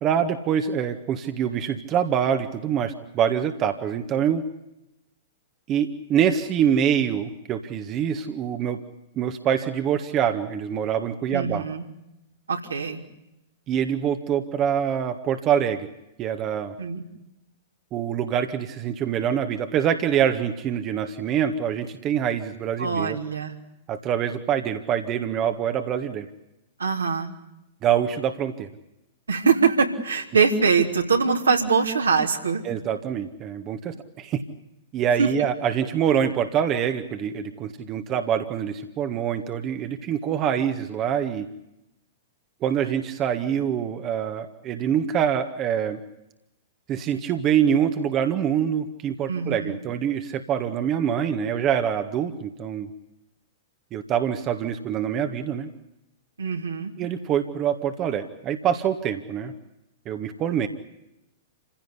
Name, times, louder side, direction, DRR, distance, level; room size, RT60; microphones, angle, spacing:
voice 1, 0.0-4.4 5.7-8.8 9.2-11.7 13.7-15.9 16.2-16.7 17.9-23.2 23.9-26.3 27.8-28.7 32.6-34.4 34.9-41.5 42.6-46.0 46.9-52.9 53.9-55.7 57.0-59.5 60.1-60.7, right 8 dB, 30° right, 7 dB, 1.7 m, -25 dB
voice 2, 11.3-11.8 12.5-13.0 16.8-17.0 22.8-23.5 26.8-27.3 29.3-32.6 35.2-35.3 49.3-49.8 56.4-56.9, right 5 dB, 75° right, 3 dB, 3.3 m, -23 dB
28.5 x 16.5 x 9.8 m, 0.90 s
figure-of-eight pair, 105°, 0 cm